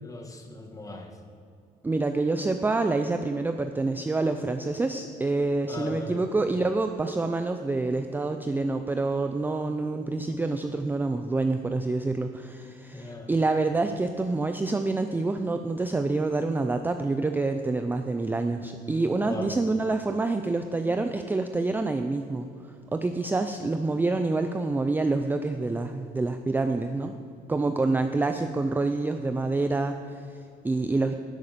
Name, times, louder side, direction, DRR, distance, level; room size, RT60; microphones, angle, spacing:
voice 1, 0.0-1.1 5.7-6.2 12.9-13.3 19.2-19.5, left 2 dB, 20° left, 3 dB, 1.5 m, -38 dB
voice 2, 1.8-27.1 27.5-31.1, right 3 dB, 10° right, 7 dB, 0.4 m, -27 dB
11.0 x 6.4 x 6.8 m, 2.4 s
cardioid pair, 110°, 17 cm